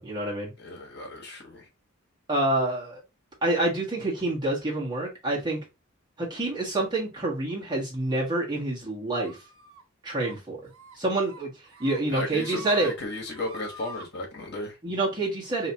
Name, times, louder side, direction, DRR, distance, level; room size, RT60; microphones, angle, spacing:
voice 1, 0.0-0.5 2.3-3.0 3.4-5.6 6.2-9.4 10.0-10.6 11.0-11.5 11.8-12.9 14.8-15.7, right 2 dB, 20° right, 1.5 m, -27 dB
voice 2, 0.6-1.7 12.1-14.8, left 2 dB, 50° left, 1.4 m, -35 dB
sound 1, 9.2-9.8 10.2-10.4 10.7-11.0 11.3-12.0 12.3-12.9 13.3-14.1, right 3 dB, 80° right, 1.1 m, -45 dB
5.0 x 2.9 x 2.9 m
head